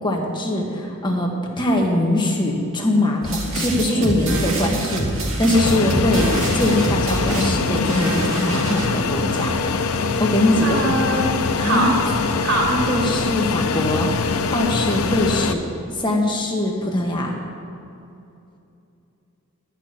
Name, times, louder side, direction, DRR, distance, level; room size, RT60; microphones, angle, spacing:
voice 1, 0.0-1.3 1.6-9.5 9.8-9.9 10.2-10.9 11.6-11.9 12.7-15.6 16.0-17.3, left 1 dB, 20° left, 0 dB, 1.3 m, -22 dB
sound 1, 3.2-8.9, right 1 dB, 65° right, 2.2 m, -25 dB
Fixed-wing aircraft airplane, 5.5-15.5, left 4 dB, 70° left, 0.6 m, -23 dB
voice 2, 10.6-11.9 12.4-12.7, right 1 dB, 85° right, -3 dB, 3.3 m, -22 dB
11.0 x 6.0 x 8.9 m, 2.7 s
head